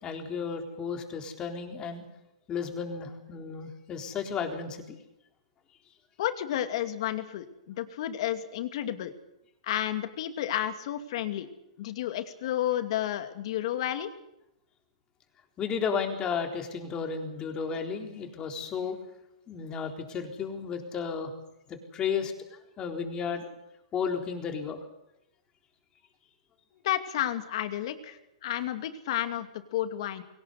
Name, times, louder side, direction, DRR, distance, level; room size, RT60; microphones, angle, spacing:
voice 1, 0.0-2.0 2.5-5.0 15.6-19.0 19.5-21.3 21.7-23.5 23.9-24.9, left 6 dB, 25° left, 4 dB, 4.0 m, -33 dB
voice 2, 6.2-9.1 9.6-11.5 11.8-14.1 26.8-30.2, left 12 dB, 55° left, 8 dB, 2.5 m, -31 dB
22.5 x 18.5 x 8.2 m, 0.85 s
hypercardioid pair, 135°, 3 cm